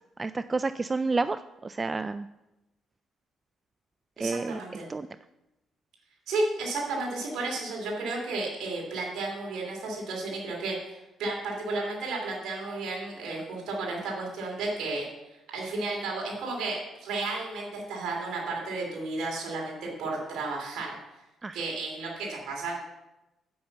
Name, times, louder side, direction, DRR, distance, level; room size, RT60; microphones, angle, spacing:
voice 1, 0.2-2.3 4.2-4.6 4.9-5.1 21.4-21.6, right 3 dB, 25° right, 12 dB, 0.3 m, -30 dB
voice 2, 4.2-4.9 6.3-15.0 15.5-21.0 21.5-22.8, right 3 dB, 80° right, -1 dB, 2.8 m, -33 dB
8.6 x 5.9 x 7.6 m, 0.95 s
cardioid pair, 90°, 0 cm